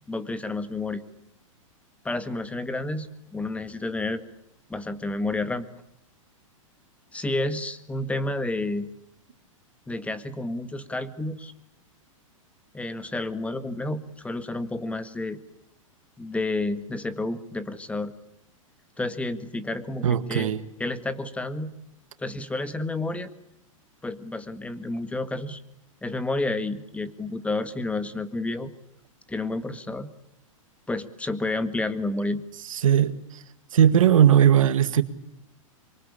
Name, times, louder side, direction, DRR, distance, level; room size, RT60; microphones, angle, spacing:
voice 1, 0.1-1.0 2.0-4.2 4.7-5.7 7.1-8.9 9.9-11.5 12.7-15.4 16.2-18.1 19.0-20.5 20.8-21.7 22.2-23.3 24.0-25.6 26.0-28.7 29.3-30.1 30.9-32.4, left 2 dB, 5° left, 11 dB, 1.8 m, -30 dB
voice 2, 20.0-20.6 32.7-33.4 33.7-35.0, right 9 dB, 75° right, 11 dB, 2.0 m, -19 dB
25.0 x 23.5 x 8.6 m, 0.81 s
hypercardioid pair, 115°, 17 cm